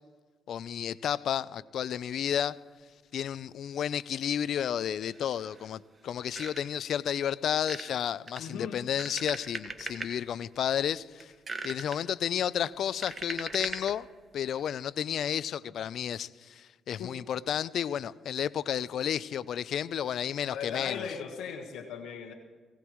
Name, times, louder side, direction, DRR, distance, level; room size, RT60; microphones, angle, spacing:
voice 1, 0.5-2.6 3.1-11.3 11.6-14.1 14.3-20.9, left 9 dB, 65° left, 0.4 m, -32 dB
sound 1, 3.8-3.9 4.2-4.3 5.0-5.7 6.0-6.8 7.5-7.9 8.3-10.1 10.6-10.9 11.2-12.0 12.6-14.0 14.5-14.7, right 4 dB, 30° right, 1.4 m, -40 dB
voice 2, 8.4-8.8 17.0-17.2 20.5-22.3, left 6 dB, 80° left, 1.3 m, -38 dB
20.0 x 18.0 x 3.1 m
cardioid pair, 90°, 0 cm